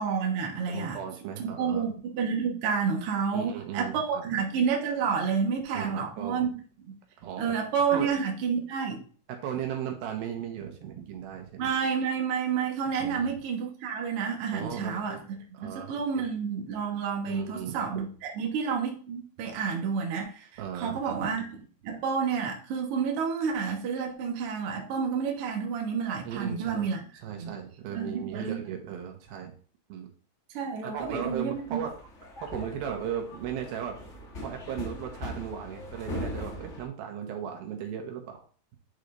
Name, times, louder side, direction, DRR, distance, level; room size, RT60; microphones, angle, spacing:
voice 1, 0.0-1.0 1.4-6.5 6.9-7.0 7.4-9.0 11.6-15.2 15.6-21.5 21.8-27.0 27.4-27.5 27.9-28.6 30.5-31.8, right 6 dB, 55° right, 1 dB, 1.6 m, -30 dB
voice 2, 0.7-1.9 3.3-4.4 5.7-6.5 7.2-7.6 7.9-8.1 9.3-11.7 13.0-13.3 14.5-15.2 15.5-16.2 17.3-18.1 20.6-21.3 26.2-26.9 27.2-29.5 29.9-30.1 30.8-31.9 32.4-34.0 34.4-38.4, right 8 dB, 90° right, 3 dB, 3.0 m, -37 dB
sound 1, 31.0-36.8, left 1 dB, 60° left, 0.7 m, -40 dB
9.9 x 3.9 x 3.3 m, 0.42 s
omnidirectional pair, 4.2 m